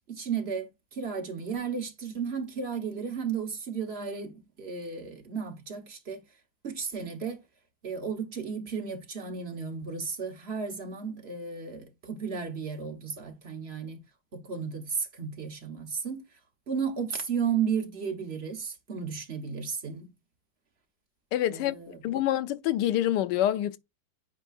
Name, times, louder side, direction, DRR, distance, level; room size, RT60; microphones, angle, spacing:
voice 1, 0.1-6.2 6.6-7.4 7.8-14.0 14.3-16.2 16.7-20.1 21.5-22.0, right 6 dB, 40° right, 1.4 m, -34 dB
voice 2, 21.3-21.7 22.0-23.8, left 12 dB, 90° left, 1.2 m, -26 dB
9.3 x 4.4 x 2.5 m
omnidirectional pair, 1.8 m